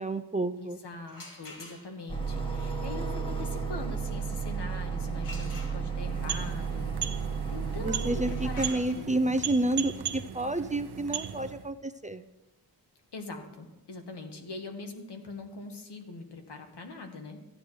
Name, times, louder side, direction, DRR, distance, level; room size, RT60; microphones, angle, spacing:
voice 1, 0.0-0.8 7.8-12.3, right 2 dB, 20° right, 10 dB, 0.4 m, -30 dB
voice 2, 0.6-9.4 13.1-17.4, left 3 dB, 85° left, 4 dB, 1.5 m, -42 dB
sound 1, 1.0-2.2 5.2-6.2 8.1-13.8, left 2 dB, 50° left, 2.6 m, -50 dB
sound 2, 2.1-8.6, right 5 dB, 10° left, 1.5 m, -33 dB
sound 3, 5.9-11.7, right 9 dB, 70° right, 0.8 m, -38 dB
15.0 x 9.6 x 3.1 m, 1.0 s
wide cardioid pair, 95°, 40 cm